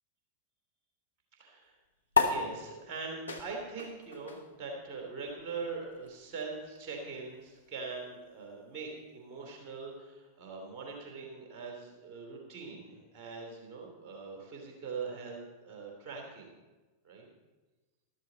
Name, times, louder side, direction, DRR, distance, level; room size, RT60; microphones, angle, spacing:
voice 1, 1.4-1.8 2.2-16.5 17.0-17.3, right 4 dB, 35° right, 0 dB, 3.5 m, -42 dB
sound 1, 2.1-8.9, left 5 dB, 80° left, 1.2 m, -36 dB
13.5 x 13.0 x 4.3 m, 1.2 s
figure-of-eight pair, 90°, 0 cm